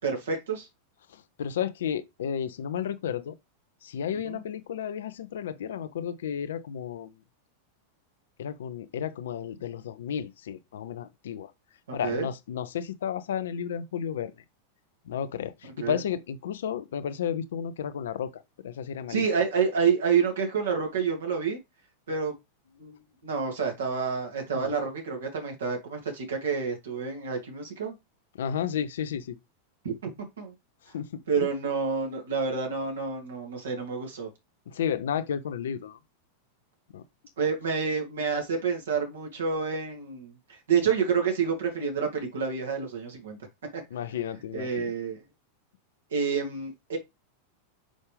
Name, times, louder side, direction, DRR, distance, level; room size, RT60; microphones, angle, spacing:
voice 1, 0.0-0.7 4.1-4.4 12.0-12.3 15.8-16.0 19.1-21.6 22.1-22.3 22.8-27.9 29.8-30.5 31.3-34.3 37.4-43.4 44.5-45.2 46.1-47.0, right 6 dB, 65° right, 2.6 m, -28 dB
voice 2, 1.1-3.4 3.8-7.1 8.4-11.5 11.9-14.3 15.1-19.3 24.5-24.7 28.4-29.4 30.9-31.1 31.4-31.5 34.7-36.0 36.9-37.0 43.9-44.9, left 8 dB, 60° left, 0.7 m, -32 dB
6.2 x 5.3 x 3.5 m
figure-of-eight pair, 90°, 0 cm